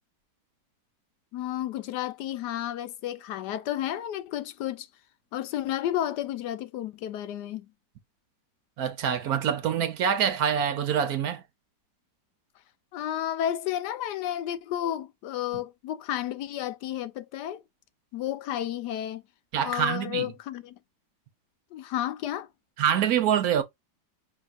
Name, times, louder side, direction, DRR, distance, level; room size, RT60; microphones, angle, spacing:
voice 1, 1.3-4.9 5.3-7.7 12.9-17.6 18.1-19.2 19.6-20.8 21.7-22.5, left 11 dB, 80° left, 1.2 m, -32 dB
voice 2, 8.8-11.4 19.5-20.3 22.8-23.6, right 8 dB, 65° right, 1.2 m, -25 dB
5.7 x 3.1 x 2.4 m
omnidirectional pair, 1.8 m